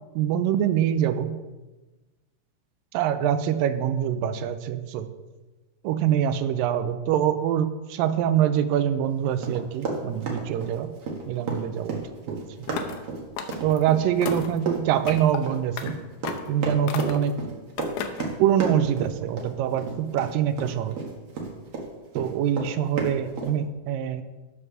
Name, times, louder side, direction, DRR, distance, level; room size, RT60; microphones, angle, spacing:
voice 1, 0.2-1.4 2.9-5.1 5.8-10.9 11.3-12.0 12.3-12.4 13.6-16.0 16.5-17.4 18.4-21.0 22.2-24.2, right 9 dB, 85° right, 11 dB, 2.3 m, -24 dB
Run, 9.4-21.8 22.1-23.5, right 3 dB, 50° right, 2.0 m, -32 dB
sound 1, 12.7-13.0 13.4-13.8 14.2-14.6 15.1-15.4 15.8-15.9 16.2-16.5 16.9-17.3 17.8-18.3, left 7 dB, 75° left, 2.2 m, -34 dB
8.8 x 6.6 x 6.1 m, 1.2 s
omnidirectional pair, 4.0 m